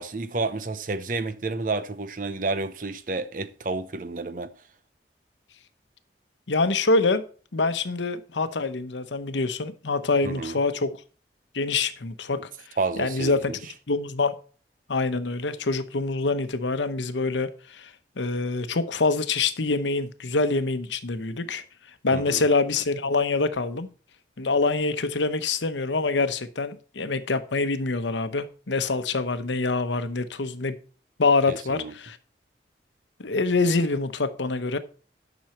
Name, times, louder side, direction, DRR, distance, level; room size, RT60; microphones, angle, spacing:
voice 1, 0.0-4.5 10.2-10.5 12.8-13.6 22.1-22.4 31.5-31.9, right 3 dB, 45° right, 0.7 m, -30 dB
voice 2, 6.5-7.2 7.5-10.9 11.5-12.4 13.0-13.5 13.9-14.3 14.9-17.9 18.2-21.6 22.0-23.9 24.4-30.8 31.2-32.2 33.2-34.8, left 3 dB, 85° left, 0.9 m, -25 dB
10.5 x 6.2 x 4.4 m
head